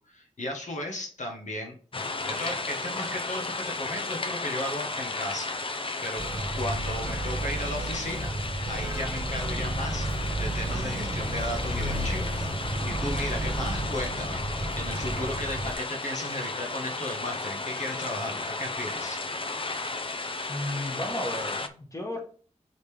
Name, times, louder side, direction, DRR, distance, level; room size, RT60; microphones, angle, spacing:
voice 1, 0.1-1.7 2.1-6.2 6.5-8.3 8.7-19.2, left 1 dB, 75° left, 1 dB, 1.4 m, -35 dB
sound 1, 1.9-21.7, left 3 dB, 45° left, 0.6 m, -34 dB
Motor vehicle (road), 6.2-15.7, right 1 dB, 35° right, 1.2 m, -32 dB
voice 2, 20.5-22.2, left 1 dB, 25° left, 1 dB, 1.9 m, -34 dB
6.5 x 5.3 x 3.4 m, 0.43 s
wide cardioid pair, 85°, 13 cm